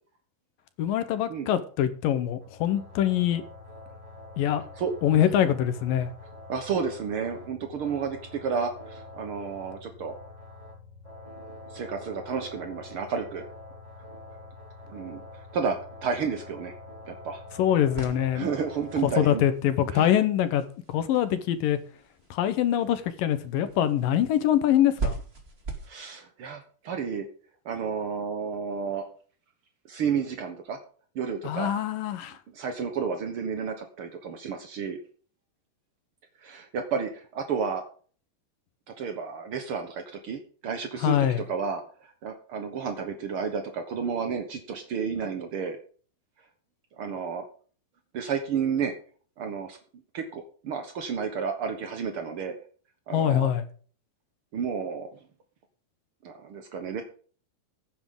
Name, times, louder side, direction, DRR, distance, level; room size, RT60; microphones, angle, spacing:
voice 1, 0.8-3.4 4.4-4.6 5.0-6.1 17.6-18.5 19.0-21.8 22.3-25.2 31.4-32.4 41.0-41.4 53.1-53.6, left 10 dB, 70° left, 2.6 m, -24 dB
sound 1, 2.4-19.5, left 2 dB, 10° right, 5.0 m, -45 dB
voice 2, 6.5-10.2 11.7-13.4 14.9-16.7 17.1-17.4 18.3-19.5 19.9-20.2 25.9-27.3 27.6-29.0 29.9-30.8 31.1-31.7 32.5-35.0 36.4-37.8 38.9-45.8 47.0-47.4 48.1-48.9 49.4-49.8 50.1-52.5 53.1-53.5 54.5-55.1 56.2-57.0, right 6 dB, 70° right, 1.3 m, -31 dB
sound 2, 17.9-25.9, right 4 dB, 25° right, 1.5 m, -40 dB
16.0 x 9.6 x 3.8 m
omnidirectional pair, 4.4 m